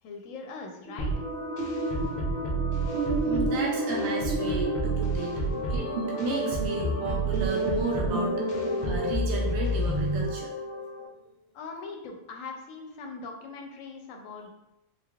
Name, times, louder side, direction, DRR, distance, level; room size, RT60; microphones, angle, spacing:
voice 1, 0.0-1.2 11.5-14.5, left 4 dB, 90° left, 3 dB, 1.0 m, -41 dB
sound 1, 0.9-10.2, right 1 dB, 60° right, 0.8 m, -33 dB
sound 2, 1.0-11.1, right 1 dB, 65° left, 0.4 m, -30 dB
voice 2, 3.2-5.4 5.7-5.9 6.2-10.5, right 4 dB, 90° right, -1 dB, 1.0 m, -34 dB
3.6 x 3.3 x 2.3 m, 0.90 s
omnidirectional pair, 1.3 m